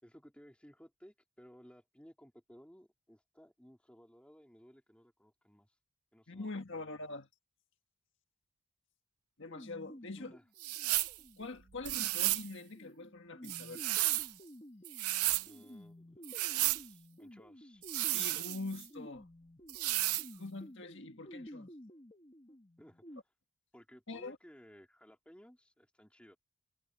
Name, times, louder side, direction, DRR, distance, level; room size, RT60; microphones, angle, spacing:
voice 1, 0.0-5.8 6.1-6.9 10.2-10.5 15.4-17.8 22.8-23.2 23.7-26.4, equal, 5° left, 2.7 m, -59 dB
voice 2, 6.3-7.3 9.4-10.4 11.4-13.9 18.1-19.3 20.3-21.7 24.1-24.4, left 3 dB, 55° left, 1.7 m, -44 dB
sound 1, 9.5-23.2, left 1 dB, 20° left, 1.4 m, -53 dB
sound 2, 10.6-11.2 11.8-12.5 13.4-14.3 14.8-15.5 16.2-16.8 17.8-18.9 19.7-20.3, right 17 dB, 85° right, 0.6 m, -33 dB
head